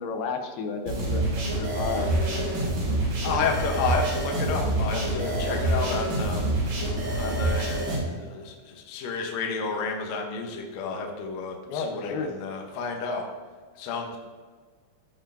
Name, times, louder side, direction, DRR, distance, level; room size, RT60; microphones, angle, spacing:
voice 1, 0.0-2.1 11.7-12.3, left 4 dB, 90° left, 5 dB, 2.7 m, -32 dB
sound 1, 0.9-8.0, right 1 dB, 70° right, 3.4 m, -26 dB
voice 2, 3.2-6.4 7.1-13.3 13.8-14.2, left 4 dB, 75° left, 1 dB, 1.6 m, -31 dB
13.0 x 4.4 x 2.6 m, 1.6 s
omnidirectional pair, 4.4 m